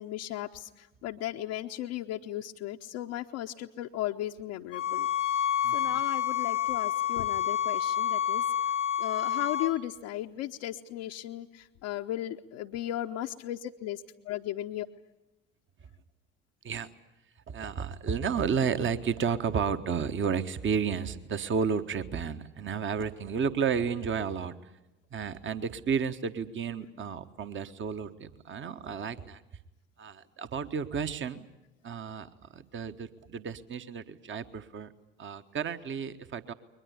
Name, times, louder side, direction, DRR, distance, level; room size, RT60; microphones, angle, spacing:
voice 1, 0.0-5.5 5.7-8.4 9.0-14.9, left 13 dB, 55° left, 1 dB, 0.9 m, -36 dB
sound 1, 4.7-9.7, left 10 dB, 85° left, 1.3 m, -29 dB
voice 2, 5.6-6.0 9.6-9.7 16.6-16.9 17.5-24.5 25.1-29.4 30.0-31.5 31.8-34.9 35.2-36.5, right 6 dB, 30° right, 10 dB, 1.3 m, -32 dB
22.0 x 20.5 x 9.8 m, 0.95 s
figure-of-eight pair, 55°, 38 cm